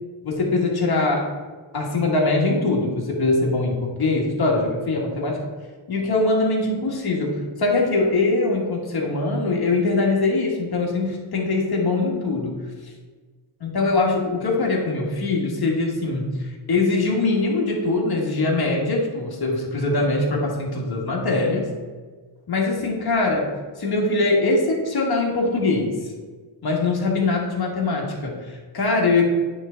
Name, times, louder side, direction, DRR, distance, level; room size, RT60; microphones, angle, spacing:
voice 1, 0.2-1.2 1.7-5.4 5.9-12.6 13.6-16.4 16.7-21.7 22.5-23.5 23.8-26.1 26.6-29.3, left 3 dB, 50° left, -1 dB, 1.6 m, -22 dB
9.3 x 3.4 x 3.9 m, 1.4 s
cardioid pair, 90°, 48 cm